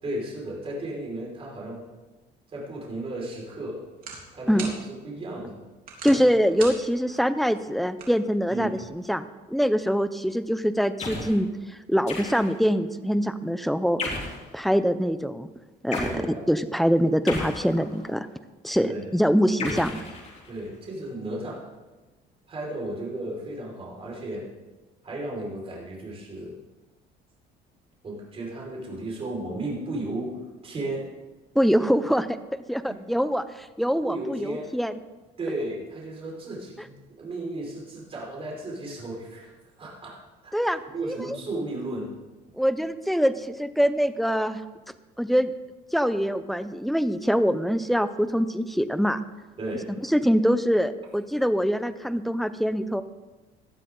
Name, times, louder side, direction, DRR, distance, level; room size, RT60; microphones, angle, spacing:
voice 1, 0.0-1.8 2.5-3.8 4.3-4.7 5.0-5.6 6.0-6.2 8.5-8.7 16.0-16.5 18.8-19.1 19.6-19.8 20.5-21.6 22.5-24.5 25.0-26.5 28.0-30.4 30.6-31.0 32.9-33.0 34.0-34.7 35.4-39.5 39.8-40.5 40.9-42.1 49.6-49.9, right 2 dB, 30° right, -3 dB, 5.1 m, -34 dB
sound 1, 2.8-8.9, right 4 dB, 50° right, 3.4 m, -44 dB
voice 2, 6.0-14.0 14.5-15.5 15.8-16.1 16.5-18.3 18.6-19.9 31.5-32.4 32.7-34.9 40.5-41.4 42.6-44.6 45.2-45.5 45.9-49.2 50.1-53.0, equal, ahead, 11 dB, 0.6 m, -24 dB
sound 2, 11.0-11.4 12.1-12.7 14.0-14.5 15.9-16.2 17.3-18.1 19.6-20.7, left 3 dB, 40° left, 3.5 m, -34 dB
18.0 x 12.0 x 3.9 m, 1.2 s
cardioid pair, 140°, 18 cm